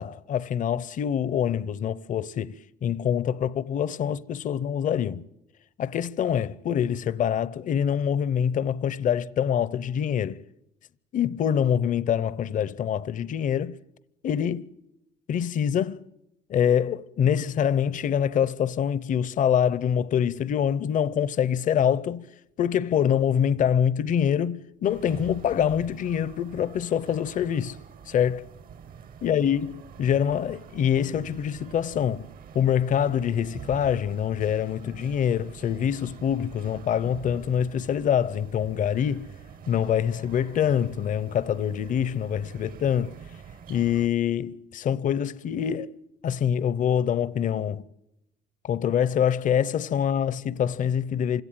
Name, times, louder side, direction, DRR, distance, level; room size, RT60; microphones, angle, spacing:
voice 1, 0.0-2.6 2.8-5.2 5.8-10.4 11.1-13.8 14.2-14.7 15.3-16.1 16.5-22.3 22.6-27.8 28.1-28.5 29.2-32.3 32.5-39.3 39.7-43.2 43.7-45.9 46.2-47.9 48.6-51.4, left 9 dB, 50° left, 0.8 m, -25 dB
sound 1, 24.9-44.1, right 7 dB, 55° right, 1.3 m, -46 dB
27.5 x 17.0 x 9.2 m
cardioid pair, 110°, 17 cm